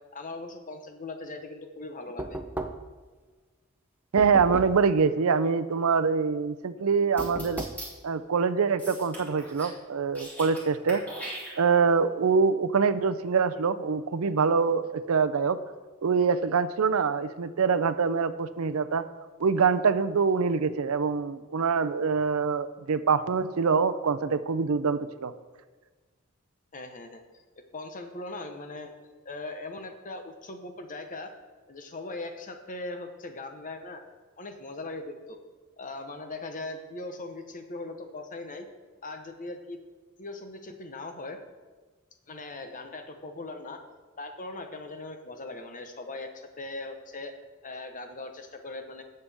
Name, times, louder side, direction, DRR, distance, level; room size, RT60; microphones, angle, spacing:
voice 1, 0.1-2.4 26.7-27.4 27.7-28.9 29.2-31.3 31.7-34.0 34.4-35.4 35.8-38.7 39.0-39.8 40.2-41.4 42.3-43.8 44.2-47.3 47.6-49.0, left 2 dB, 40° left, 6 dB, 0.9 m, -39 dB
Knock, 2.2-3.0 4.2-4.9 7.2-7.9, right 1 dB, 10° right, 0.5 m, -36 dB
voice 2, 4.1-7.6 8.0-11.0 11.6-15.6 16.0-19.1 19.4-25.3, right 5 dB, 70° right, 12 dB, 0.5 m, -25 dB
sound 1, 7.2-7.9 8.8-9.8 10.0-10.6 10.9-11.9, right 1 dB, 5° left, 2.9 m, -40 dB
17.0 x 6.7 x 3.5 m, 1.3 s
head